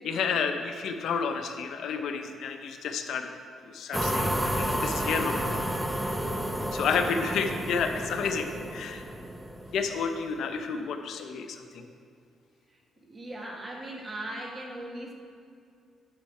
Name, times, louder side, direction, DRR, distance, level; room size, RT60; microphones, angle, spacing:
voice 1, 0.0-3.3 3.6-5.6 6.0-6.2 6.7-9.1 9.7-11.9, left 5 dB, 75° left, 6 dB, 0.7 m, -31 dB
sound 1, 3.9-10.2, equal, 10° right, 0.6 m, -31 dB
voice 2, 6.7-7.2 13.1-15.1, right 1 dB, 25° right, 0 dB, 1.6 m, -39 dB
10.5 x 5.7 x 4.3 m, 2.3 s
cardioid pair, 90°, 0 cm